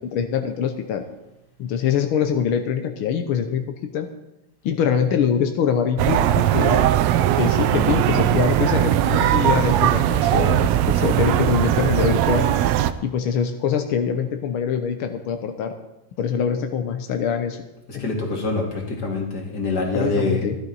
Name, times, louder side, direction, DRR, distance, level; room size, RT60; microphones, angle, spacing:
voice 1, 0.1-1.1 1.6-3.6 3.9-4.1 4.6-6.9 7.4-12.5 13.0-15.8 16.2-17.6 17.9-18.0 19.9-20.6, left 7 dB, 75° left, 6 dB, 1.2 m, -24 dB
sound 1, 6.0-12.9, right 11 dB, 75° right, 1.6 m, -19 dB
voice 2, 17.9-20.4, left 3 dB, 35° left, 0 dB, 2.7 m, -25 dB
16.5 x 12.0 x 4.1 m, 0.93 s
omnidirectional pair, 3.4 m